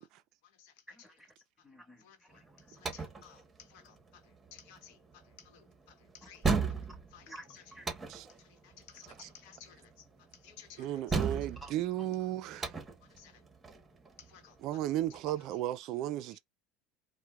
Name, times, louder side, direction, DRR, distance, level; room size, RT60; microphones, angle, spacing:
voice 1, 0.9-1.3 1.6-2.7 6.2-6.3 7.3-8.3 11.6-11.7 12.0-12.2 15.1-15.4, right 1 dB, ahead, 1.7 m, -53 dB
voice 2, 2.0-2.4 2.7-6.4 7.1-7.6 8.4-10.1 10.4-10.9 13.2-13.4 14.2-14.6 16.3-16.4, left 8 dB, 75° left, 0.9 m, -56 dB
sound 1, 2.3-15.5, right 5 dB, 20° right, 1.0 m, -38 dB
voice 3, 10.8-12.7 14.6-16.4, right 13 dB, 60° right, 0.3 m, -34 dB
4.5 x 2.1 x 2.2 m
supercardioid pair, 95°, 0 cm